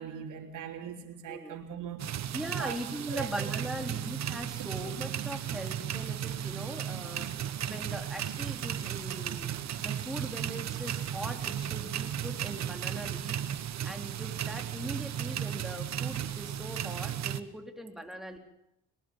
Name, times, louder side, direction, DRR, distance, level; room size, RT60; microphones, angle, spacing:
voice 1, 0.0-2.3 2.6-2.8 3.1-3.3 3.7-3.9 4.6-4.7, right 9 dB, 80° right, 3.5 m, -41 dB
sound 1, 2.0-17.4, right 10 dB, 65° right, 1.2 m, -35 dB
voice 2, 2.3-7.3 7.6-9.5 9.7-18.4, right 1 dB, ahead, 3.7 m, -41 dB
22.5 x 19.5 x 7.2 m
cardioid pair, 90°, 30 cm